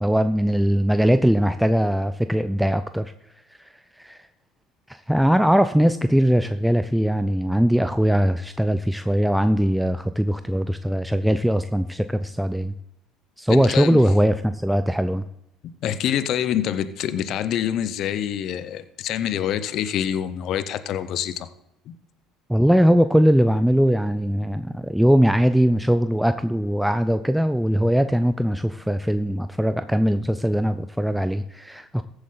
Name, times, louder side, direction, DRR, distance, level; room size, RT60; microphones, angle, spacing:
voice 1, 0.0-3.1 3.6-3.7 4.0-4.2 4.9-12.7 13.4-15.2 22.5-32.0, equal, ahead, 10 dB, 0.5 m, -20 dB
voice 2, 13.5-14.0 15.8-21.5 21.9-22.0, left 10 dB, 60° left, 13 dB, 0.9 m, -26 dB
15.0 x 8.0 x 4.0 m, 0.81 s
hypercardioid pair, 75°, 0 cm